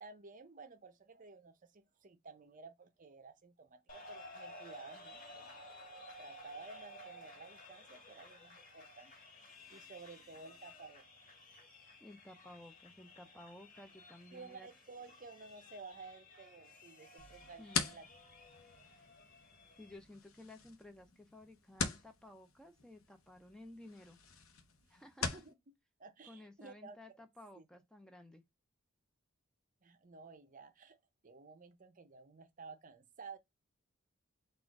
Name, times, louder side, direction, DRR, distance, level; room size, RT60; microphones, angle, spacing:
voice 1, 0.0-5.7 6.2-9.1 9.7-11.1 14.3-18.1 24.8-25.6 26.0-27.2 27.5-27.7 29.8-33.4, right 4 dB, 40° right, 0.6 m, -54 dB
sound 1, 3.9-20.0, left 1 dB, 40° left, 2.4 m, -55 dB
voice 2, 12.0-14.7 17.6-18.0 19.8-24.2 24.9-25.3 26.3-28.4, left 1 dB, 5° left, 0.5 m, -55 dB
sound 2, 17.2-25.5, left 5 dB, 75° left, 0.9 m, -43 dB
4.2 x 2.4 x 4.6 m
head